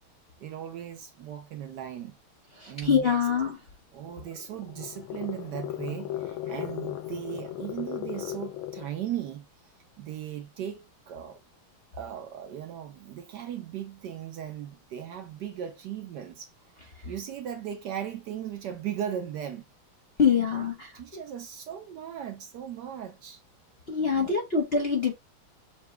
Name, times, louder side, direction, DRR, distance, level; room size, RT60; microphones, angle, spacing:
voice 1, 0.4-2.2 2.7-3.2 3.9-9.5 10.0-11.4 11.9-16.5 17.0-19.6 20.3-20.5 20.9-23.4 24.0-24.4, right 10 dB, 75° right, 1.1 m, -37 dB
voice 2, 2.6-3.6 17.0-17.1 20.2-20.9 23.9-25.1, left 6 dB, 45° left, 0.8 m, -25 dB
sound 1, 4.0-9.0, left 12 dB, 80° left, 1.5 m, -37 dB
5.8 x 2.2 x 3.2 m
omnidirectional pair, 2.2 m